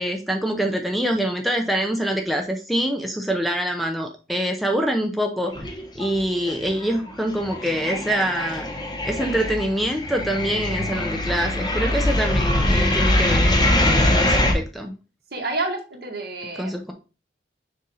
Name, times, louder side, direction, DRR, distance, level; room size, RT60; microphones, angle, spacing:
voice 1, 0.0-5.7 5.9-8.7 9.0-14.9 16.6-16.9, equal, ahead, 3 dB, 0.6 m, -25 dB
sound 1, 5.5-6.2 6.5-14.5, left 1 dB, 25° left, 1.0 m, -22 dB
voice 2, 15.3-16.8, right 2 dB, 60° right, 1 dB, 1.8 m, -29 dB
6.5 x 2.6 x 5.5 m, 0.33 s
head